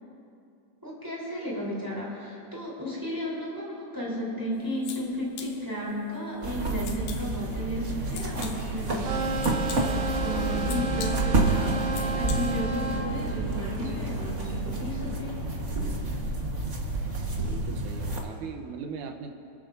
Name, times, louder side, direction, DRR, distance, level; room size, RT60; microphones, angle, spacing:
voice 1, 0.8-9.3 9.8-15.4, equal, 5° right, -6 dB, 3.6 m, -34 dB
sound 1, 4.5-12.8, left 7 dB, 80° left, 2.5 m, -45 dB
sound 2, 6.4-18.2, right 2 dB, 40° right, 1.1 m, -29 dB
sound 3, 8.9-13.1, right 2 dB, 60° right, 1.6 m, -32 dB
voice 2, 17.4-19.3, right 5 dB, 85° right, 4 dB, 2.5 m, -39 dB
27.0 x 14.0 x 2.7 m, 2.6 s
omnidirectional pair, 3.6 m